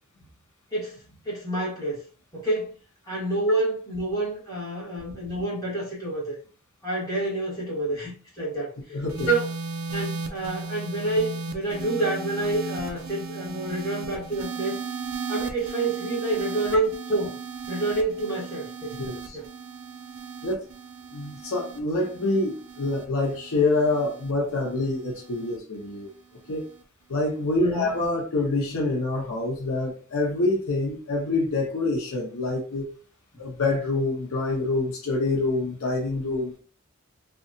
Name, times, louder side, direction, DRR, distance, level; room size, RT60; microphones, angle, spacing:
voice 1, 1.2-2.0 2.3-2.7 3.1-6.3 6.8-9.0 9.3-9.5 9.9-14.8 15.3-17.4 17.7-18.9 19.3-19.4 27.6-28.0, right 2 dB, 20° left, -6 dB, 1.4 m, -28 dB
voice 2, 8.9-9.3 18.9-19.4 20.4-20.6 21.1-26.1 26.5-26.7 27.1-32.9 33.4-36.6, left 2 dB, 80° left, 0 dB, 0.7 m, -26 dB
sound 1, 9.1-25.6 26.5-26.8, right 4 dB, 80° right, 0.5 m, -36 dB
2.7 x 2.3 x 2.6 m, 0.38 s
head